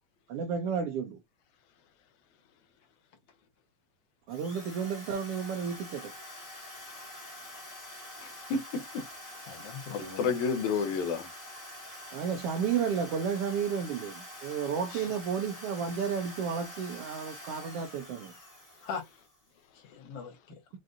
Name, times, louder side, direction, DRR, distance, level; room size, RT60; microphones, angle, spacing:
voice 1, 0.3-1.2 4.3-6.1 12.1-18.4, right 6 dB, 75° right, 1.3 m, -32 dB
Drill, 4.3-19.5, left 1 dB, 10° left, 0.8 m, -46 dB
voice 2, 8.2-9.0 9.9-11.3, left 5 dB, 80° left, 2.2 m, -31 dB
voice 3, 9.5-10.3 14.9-15.1 18.8-19.0 19.7-20.6, left 5 dB, 60° left, 1.9 m, -41 dB
6.4 x 2.6 x 2.5 m
omnidirectional pair, 3.4 m